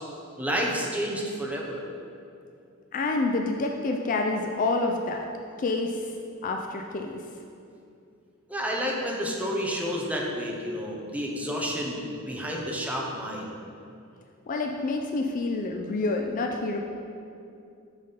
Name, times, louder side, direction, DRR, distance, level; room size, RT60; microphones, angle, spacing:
voice 1, 0.4-1.8 8.5-13.5, equal, 5° right, -2 dB, 0.8 m, -30 dB
voice 2, 2.9-5.3 5.6-6.1 6.4-7.2 14.5-16.8, left 3 dB, 40° left, 3 dB, 0.4 m, -28 dB
8.7 x 4.0 x 3.9 m, 2.6 s
head